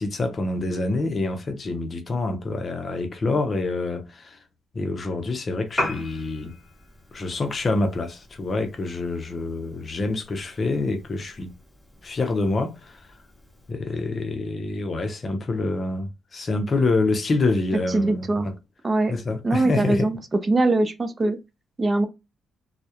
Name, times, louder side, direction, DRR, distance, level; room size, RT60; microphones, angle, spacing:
voice 1, 0.0-4.4 4.7-6.5 7.1-11.5 12.0-13.0 13.7-18.5 19.1-20.1, left 3 dB, 40° left, 0.6 m, -26 dB
Piano, 5.7-13.7, left 1 dB, 10° left, 0.8 m, -38 dB
voice 2, 17.9-18.5 18.8-19.1 19.4-20.2 20.5-21.4 21.8-22.1, right 2 dB, 30° right, 0.5 m, -22 dB
2.2 x 2.0 x 2.8 m
cardioid pair, 90°, 0 cm